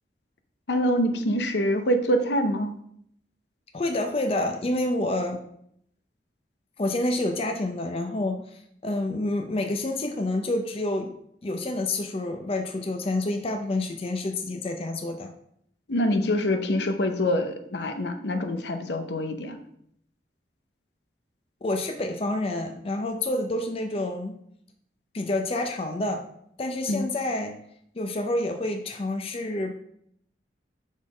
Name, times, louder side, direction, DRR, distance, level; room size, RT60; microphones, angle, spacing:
voice 1, 0.7-2.7 15.9-19.6 26.9-27.1, equal, 75° left, 7 dB, 0.7 m, -25 dB
voice 2, 3.7-5.4 6.8-8.4 8.8-11.1 11.4-15.3 21.6-24.4 25.1-26.2 26.6-27.5 28.0-29.8, left 2 dB, 35° left, 4 dB, 0.5 m, -28 dB
6.4 x 3.7 x 4.9 m, 0.70 s
head